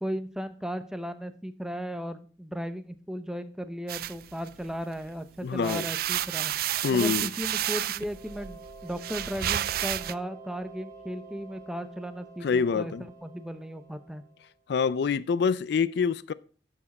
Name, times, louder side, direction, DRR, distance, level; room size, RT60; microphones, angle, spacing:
voice 1, 0.0-6.5 6.9-14.2, equal, 5° right, 0.7 m, -36 dB
sound 1, 3.9-5.1 5.5-10.1, right 12 dB, 55° right, 0.4 m, -31 dB
voice 2, 5.4-5.9 6.8-7.3 12.4-13.0 14.7-16.3, left 5 dB, 65° left, 0.4 m, -26 dB
sound 2, 7.9-14.6, right 3 dB, 20° right, 2.6 m, -49 dB
11.0 x 7.3 x 4.1 m
head